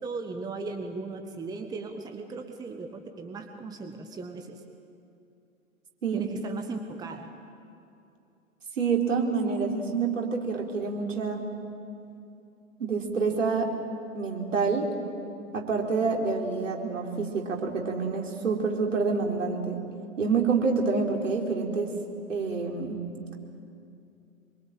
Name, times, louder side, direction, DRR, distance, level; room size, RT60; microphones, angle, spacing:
voice 1, 0.0-4.6 6.1-7.3, right 4 dB, 10° right, 5 dB, 1.2 m, -37 dB
voice 2, 8.8-11.4 12.8-13.7 14.1-14.9 15.5-19.8 20.2-21.9 22.3-23.0, right 4 dB, 65° right, 0 dB, 4.3 m, -27 dB
26.0 x 23.0 x 9.0 m, 2.6 s
figure-of-eight pair, 110°, 41 cm